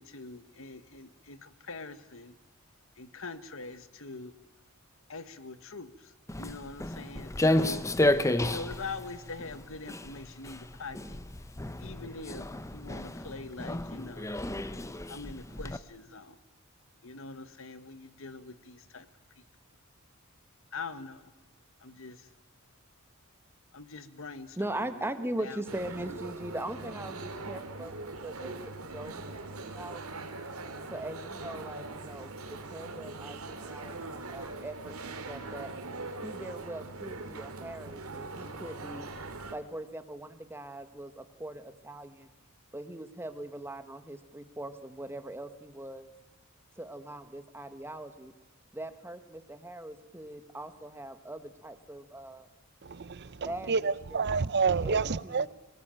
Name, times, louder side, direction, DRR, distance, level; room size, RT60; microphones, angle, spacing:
voice 1, 0.0-2.4 3.0-4.3 5.1-7.8 8.4-11.2 11.8-12.5 12.7-14.3 15.1-16.4 17.0-19.1 19.4-19.5 20.7-21.3 21.8-22.3 23.7-25.1 25.4-25.6, left 3 dB, 65° left, 1.5 m, -43 dB
Walk footsteps, 6.3-15.8, left 1 dB, 15° left, 0.8 m, -31 dB
voice 2, 24.6-30.2 30.9-35.0 35.3-35.7 36.2-39.0 39.5-42.3 42.7-46.1 46.7-48.3 48.7-52.5 53.5-54.3 54.8-55.5, right 1 dB, 10° right, 1.5 m, -41 dB
sound 1, 25.7-39.5, right 3 dB, 90° right, 2.5 m, -41 dB
voice 3, 52.8-55.5, right 5 dB, 50° right, 0.7 m, -29 dB
25.0 x 18.5 x 9.1 m
head